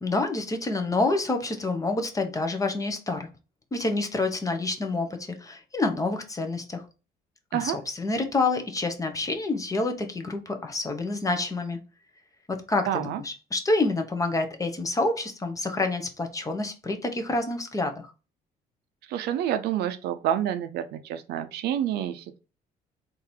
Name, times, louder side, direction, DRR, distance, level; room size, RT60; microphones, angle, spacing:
voice 1, 0.0-3.3 3.7-6.8 7.5-11.8 12.5-18.1, left 2 dB, 20° left, 0.9 m, -28 dB
voice 2, 12.9-13.2 19.1-22.4, right 10 dB, 75° right, 0.6 m, -28 dB
3.8 x 2.7 x 4.4 m
cardioid pair, 110°, 17 cm